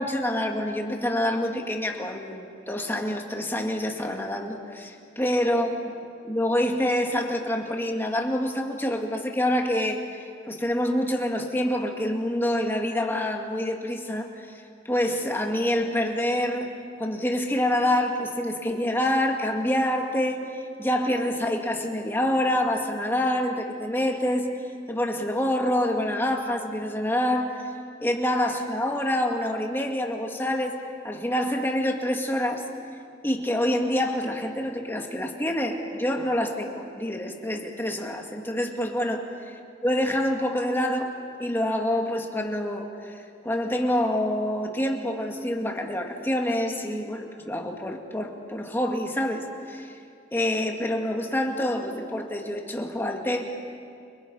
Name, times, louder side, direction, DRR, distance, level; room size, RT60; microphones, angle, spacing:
voice 1, 0.0-5.7 6.3-10.0 10.4-16.7 17.0-20.4 20.8-24.5 24.9-27.7 28.0-30.8 31.0-32.7 33.2-39.2 39.8-41.1 41.4-49.9 50.3-53.4, left 1 dB, 10° left, 2 dB, 2.0 m, -26 dB
30.0 x 25.5 x 5.6 m, 2.4 s
head